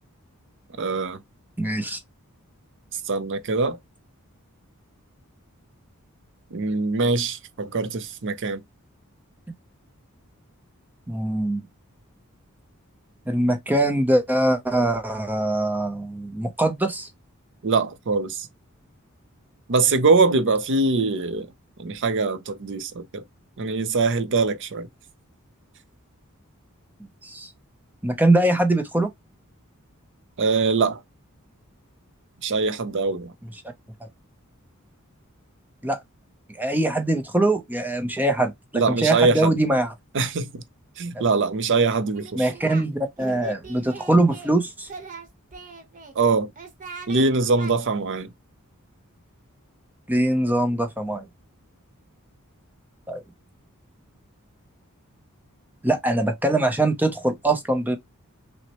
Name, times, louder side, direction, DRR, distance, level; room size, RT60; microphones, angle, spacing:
voice 1, 0.8-1.2 3.1-3.8 6.5-8.6 17.6-18.5 19.7-21.5 21.8-23.2 23.6-24.9 30.4-31.0 32.4-33.3 38.7-39.5 40.1-40.6 41.0-42.5 46.2-46.5 47.1-48.3, right 3 dB, 55° right, 0.6 m, -23 dB
voice 2, 1.6-2.0 11.1-11.6 13.3-17.1 27.2-27.5 28.0-29.1 35.8-36.0 36.6-39.9 41.1-41.2 42.3-44.9 50.1-51.3 53.1-53.2 55.8-58.0, right 1 dB, 10° right, 0.6 m, -22 dB
Singing, 42.2-42.9 43.2-44.5 44.8-46.1 46.6-47.2 47.6-47.7, right 4 dB, 35° right, 1.0 m, -40 dB
5.9 x 2.1 x 2.9 m
head